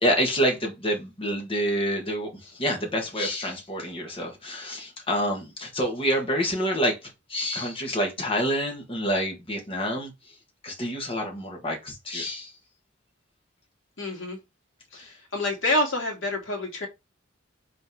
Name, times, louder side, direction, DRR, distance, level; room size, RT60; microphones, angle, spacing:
voice 1, 0.0-10.1 10.6-12.5, equal, 30° left, 1.6 m, -27 dB
voice 2, 14.0-14.4 14.9-16.9, left 2 dB, 75° left, 2.4 m, -27 dB
5.7 x 3.5 x 4.7 m
head